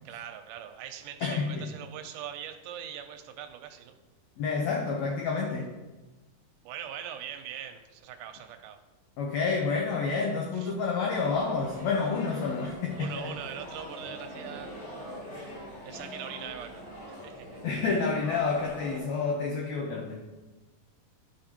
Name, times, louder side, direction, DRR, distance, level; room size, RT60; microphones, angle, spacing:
voice 1, 0.1-4.0 6.7-8.8 10.5-10.8 13.0-14.7 15.8-16.8 17.1-17.6, right 9 dB, 80° right, 6 dB, 2.1 m, -41 dB
voice 2, 1.2-1.7 4.4-5.7 9.2-13.3 17.6-20.2, left 4 dB, 75° left, 1 dB, 1.6 m, -29 dB
sound 1, 11.1-19.0, equal, 60° left, 3.9 m, -43 dB
12.0 x 5.3 x 2.9 m, 1.2 s
omnidirectional pair, 3.9 m